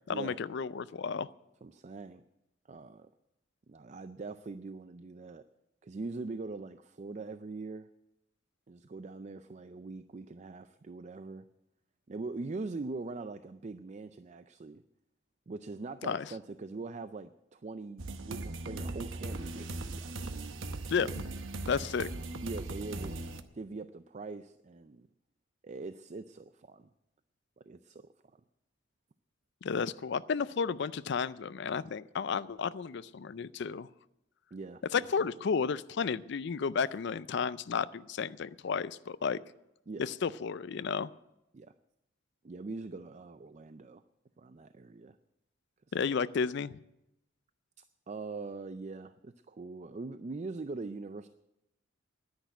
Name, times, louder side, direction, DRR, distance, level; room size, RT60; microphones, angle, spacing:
voice 1, 0.1-1.3 16.1-16.3 20.9-21.1 21.7-22.1 29.6-33.9 34.9-39.4 40.0-41.1 45.9-46.8, left 6 dB, 60° left, 16 dB, 0.4 m, -32 dB
voice 2, 1.6-2.2 2.7-3.1 3.7-5.5 5.8-7.9 8.7-11.5 12.1-14.8 15.5-20.4 21.0-21.2 22.4-23.2 23.5-25.1 25.6-26.9 27.6-28.0 34.5-35.1 39.9-40.1 41.5-41.7 42.4-44.0 44.4-45.2 45.9-46.1 48.1-51.3, right 3 dB, 35° right, 12 dB, 0.4 m, -42 dB
sound 1, 18.0-23.4, right 2 dB, 75° right, 0.9 m, -39 dB
10.5 x 10.0 x 9.1 m, 0.89 s
head